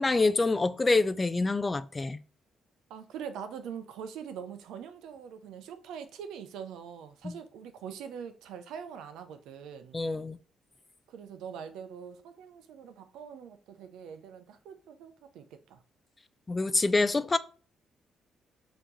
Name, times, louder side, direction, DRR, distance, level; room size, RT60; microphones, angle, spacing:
voice 1, 0.0-2.2 7.2-7.3 9.9-10.4 16.5-17.4, left 3 dB, 25° left, 0.3 m, -26 dB
voice 2, 2.9-10.0 11.1-15.8, right 7 dB, 85° right, 0.6 m, -43 dB
4.3 x 2.9 x 3.9 m
cardioid pair, 90°, 0 cm